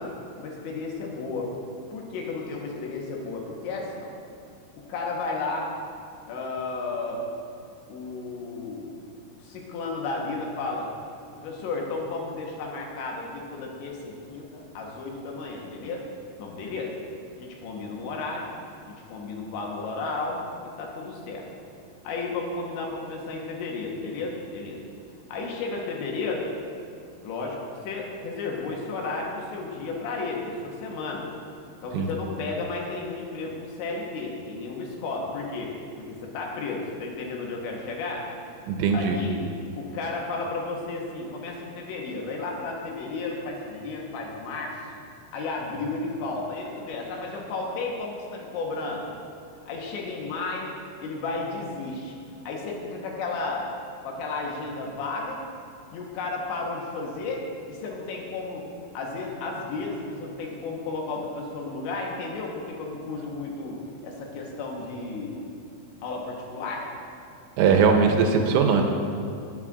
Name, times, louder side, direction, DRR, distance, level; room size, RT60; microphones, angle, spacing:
voice 1, 0.0-1.5 1.9-4.1 4.8-5.7 6.3-7.2 7.9-9.0 9.4-10.9 11.4-16.1 16.4-16.9 17.4-18.5 18.9-20.4 20.8-21.5 22.0-24.8 25.3-26.5 27.2-27.6 27.8-31.3 31.8-38.3 38.9-39.4 39.8-44.8 45.3-49.1 49.7-50.7 51.0-52.2 52.5-53.7 54.0-55.4 55.9-58.7 58.9-65.4 66.0-66.9, left 3 dB, 75° left, -1 dB, 3.3 m, -33 dB
voice 2, 38.7-39.2 67.6-68.8, right 5 dB, 85° right, 3 dB, 3.1 m, -20 dB
19.0 x 8.4 x 2.5 m, 2.4 s
omnidirectional pair, 5.6 m